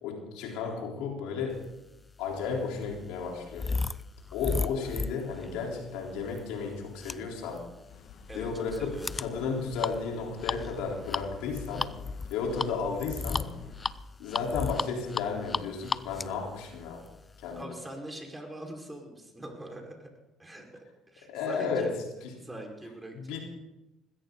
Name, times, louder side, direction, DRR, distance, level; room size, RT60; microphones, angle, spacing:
voice 1, 0.0-1.6 2.2-3.8 4.3-7.6 8.3-11.9 12.3-13.5 14.2-17.0 17.4-17.7 21.3-21.9 22.2-22.3 23.2-23.4, left 5 dB, 80° left, 0 dB, 3.8 m, -33 dB
sound 1, 2.0-17.6, left 3 dB, 25° left, 0.5 m, -36 dB
sound 2, 7.9-13.9, left 7 dB, 65° left, 1.8 m, -47 dB
voice 2, 8.3-9.2 12.4-12.8 17.5-20.1 20.4-21.9 22.4-23.4, right 1 dB, 15° right, 1 dB, 4.9 m, -43 dB
20.0 x 16.0 x 4.0 m, 0.94 s
supercardioid pair, 85°, 0 cm